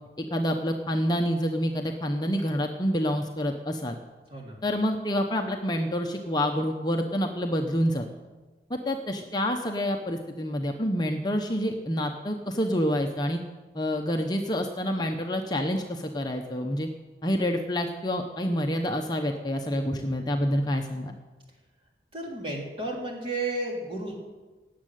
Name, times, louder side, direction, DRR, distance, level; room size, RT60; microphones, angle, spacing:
voice 1, 0.2-4.0 4.6-8.0 8.7-13.4 13.7-16.9 17.2-21.1, equal, 25° left, 3 dB, 0.9 m, -27 dB
voice 2, 22.1-24.2, right 2 dB, 30° right, -1 dB, 3.4 m, -32 dB
18.5 x 7.5 x 9.3 m, 1.3 s
head